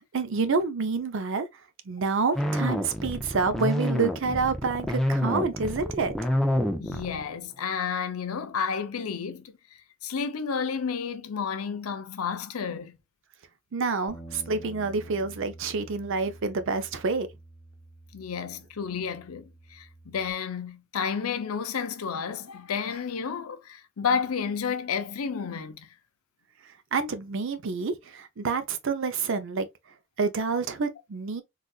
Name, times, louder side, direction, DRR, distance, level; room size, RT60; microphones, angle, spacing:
voice 1, 0.1-1.5 1.9-6.1 13.7-17.3 26.9-29.7 30.2-31.4, right 4 dB, 60° right, 0.5 m, -28 dB
sound 1, 2.3-7.3, equal, ahead, 0.4 m, -28 dB
voice 2, 6.8-9.5 10.0-13.0 18.1-25.9, left 6 dB, 90° left, 0.6 m, -31 dB
Bass guitar, 14.1-20.3, right 2 dB, 20° left, 0.9 m, -48 dB
3.8 x 2.4 x 2.3 m
head